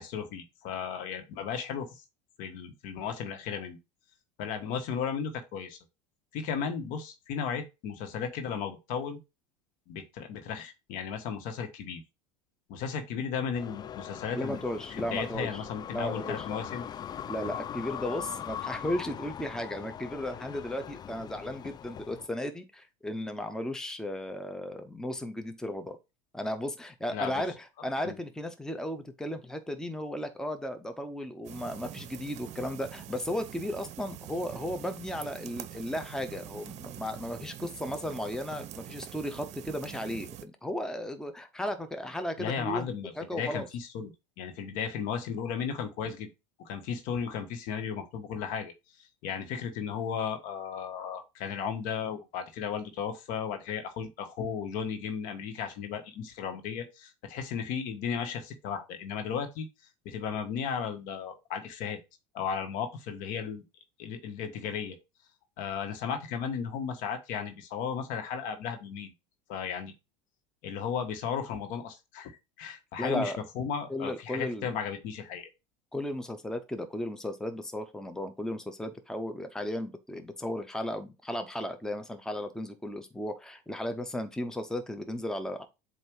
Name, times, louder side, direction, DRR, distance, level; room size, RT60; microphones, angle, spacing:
voice 1, 0.0-2.0 2.4-3.8 4.4-5.8 6.3-9.2 9.9-12.0 12.7-14.6 14.9-16.8 27.1-27.4 28.0-28.1 42.4-44.1 44.4-46.3 46.6-48.7 49.2-59.7 60.0-62.0 62.3-63.6 64.0-65.0 65.6-69.1 69.5-69.9 70.6-72.3 72.6-75.5, left 7 dB, 60° left, 1.5 m, -35 dB
sound 1, 13.5-22.3, left 9 dB, 25° left, 0.4 m, -41 dB
voice 2, 14.3-15.6 15.9-16.4 17.3-26.0 26.3-43.7 73.0-73.4 73.9-74.7 75.9-85.7, left 1 dB, 5° left, 1.0 m, -35 dB
sound 2, 31.4-40.4, right 12 dB, 45° right, 0.8 m, -45 dB
7.6 x 2.8 x 4.7 m
hypercardioid pair, 85°, 16 cm